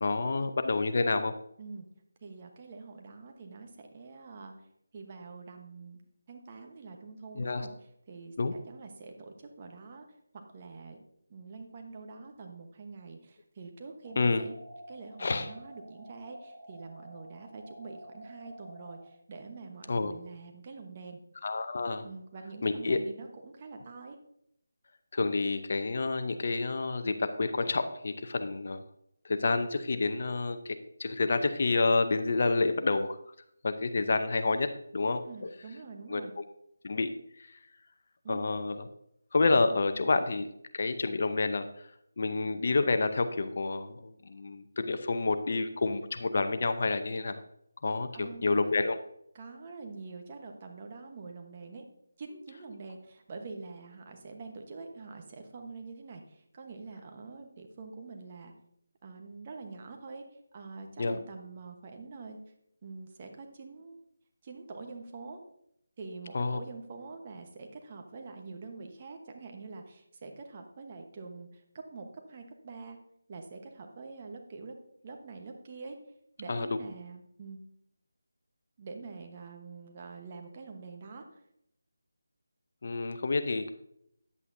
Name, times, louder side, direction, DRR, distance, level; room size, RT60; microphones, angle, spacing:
voice 1, 0.0-1.3 7.3-7.7 8.4-8.5 14.2-14.5 15.2-15.5 19.9-20.1 21.4-22.1 22.6-23.0 25.1-28.8 29.2-33.2 33.6-35.5 36.1-36.4 36.8-37.1 37.4-37.6 38.3-38.9 39.3-40.5 40.7-41.9 42.2-47.4 47.8-49.0 61.0-61.2 66.3-66.6 76.5-76.8 82.8-83.7, left 3 dB, 50° left, 9 dB, 0.7 m, -29 dB
voice 2, 2.2-4.5 4.9-6.0 6.3-7.7 8.1-10.0 10.3-11.0 11.3-14.5 14.9-21.2 22.0-24.2 35.2-36.3 38.2-38.5 48.1-48.9 49.3-51.8 52.2-58.5 59.0-60.2 60.5-62.4 62.8-64.0 64.4-65.4 66.0-71.6 71.9-73.0 73.3-74.7 75.0-76.0 76.4-77.6 78.8-81.2, right 4 dB, 30° right, 3 dB, 1.1 m, -45 dB
sound 1, 14.0-19.0, equal, 10° right, 1.8 m, -50 dB
9.6 x 8.2 x 2.7 m, 0.74 s
figure-of-eight pair, 165°, 0 cm